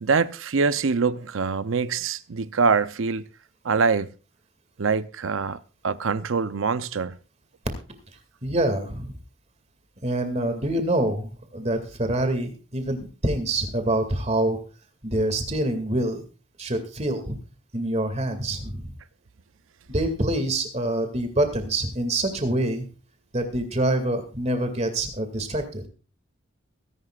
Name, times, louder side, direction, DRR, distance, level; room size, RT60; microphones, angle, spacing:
voice 1, 0.0-3.2 3.6-4.1 4.8-5.6 5.8-7.1, right 5 dB, 80° right, 0.6 m, -24 dB
voice 2, 8.4-9.2 10.0-14.6 15.0-16.2 16.6-17.4 17.7-18.9 19.9-22.9 23.3-25.8, right 1 dB, 35° right, 2.3 m, -26 dB
23.0 x 11.0 x 2.4 m
head